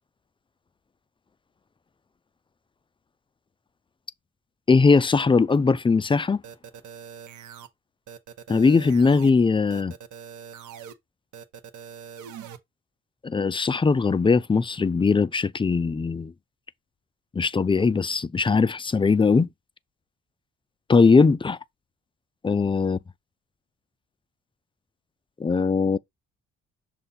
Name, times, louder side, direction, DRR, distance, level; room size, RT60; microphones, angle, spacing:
voice 1, 4.7-6.4 8.5-9.9 13.2-16.3 17.3-19.5 20.9-21.6 22.4-23.0 25.4-26.0, left 4 dB, 15° left, 0.4 m, -20 dB
sound 1, 6.4-7.7 8.1-9.3 9.7-10.9 11.3-12.6, right 7 dB, 75° right, 1.1 m, -42 dB
6.6 x 2.6 x 5.6 m
cardioid pair, 90°, 30 cm